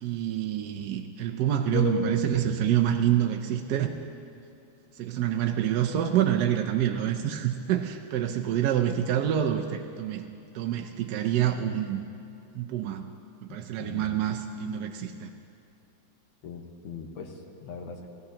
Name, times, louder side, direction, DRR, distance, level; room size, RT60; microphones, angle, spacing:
voice 1, 0.0-3.9 5.0-10.3 10.5-12.0 12.5-13.0 13.4-15.3, right 10 dB, 70° right, 4 dB, 1.0 m, -27 dB
sound 1, 1.7-5.6 6.1-6.4, left 2 dB, 55° left, 1.7 m, -36 dB
voice 2, 13.5-14.1 16.4-18.1, left 5 dB, 90° left, 2 dB, 1.9 m, -41 dB
19.0 x 14.0 x 2.9 m, 2.6 s
omnidirectional pair, 2.1 m